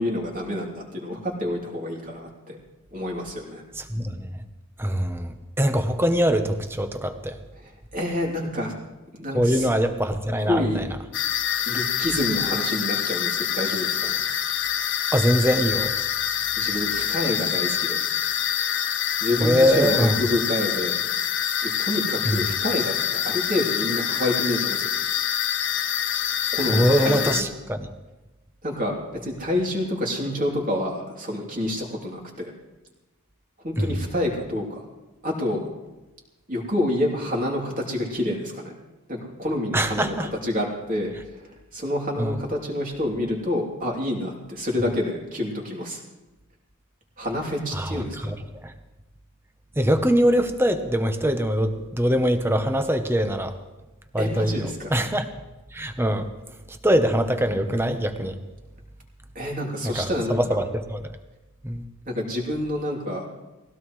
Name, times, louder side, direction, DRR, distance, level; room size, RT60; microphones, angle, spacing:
voice 1, 0.0-2.6 2.9-3.6 7.6-8.7 9.1-9.7 10.5-10.8 11.7-14.2 16.6-18.0 19.2-21.0 21.6-24.9 26.5-27.5 28.6-32.5 33.6-34.8 35.2-35.6 36.5-38.7 39.1-40.1 40.4-46.0 47.2-48.3 54.2-54.9 59.3-60.4 62.1-63.3, left 1 dB, 35° right, -1 dB, 3.0 m, -28 dB
voice 2, 3.8-4.4 4.8-7.4 9.3-10.9 15.1-15.9 19.4-20.2 22.2-22.5 26.7-27.9 33.8-34.1 39.7-40.3 42.2-42.4 47.7-48.7 49.8-53.5 54.1-55.3 55.7-56.3 56.7-58.4 59.8-61.1 61.6-61.8, equal, 10° right, 7 dB, 0.9 m, -23 dB
sound 1, 11.1-27.4, left 10 dB, 55° left, 0.8 m, -26 dB
20.0 x 16.5 x 3.2 m, 1.1 s
head